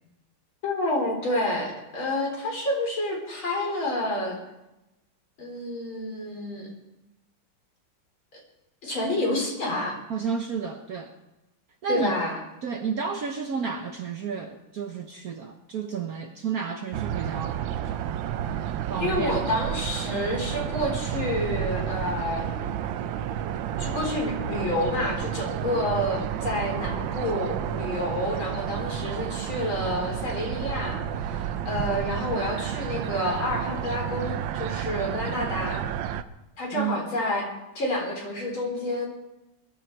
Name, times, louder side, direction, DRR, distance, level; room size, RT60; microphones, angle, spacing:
voice 1, 0.6-4.4 5.4-6.7 8.3-8.4 8.8-10.0 11.9-12.4 19.0-22.8 23.8-35.9 36.6-37.5 37.7-39.1, left 1 dB, 65° left, -1 dB, 4.8 m, -29 dB
voice 2, 10.1-11.1 11.8-12.2 12.6-17.6 18.9-19.5 36.7-37.1, right 6 dB, 55° right, 5 dB, 1.2 m, -31 dB
sound 1, 16.9-36.2, right 9 dB, 70° right, 1.4 m, -31 dB
21.0 x 13.0 x 4.6 m, 0.96 s
omnidirectional pair, 2.4 m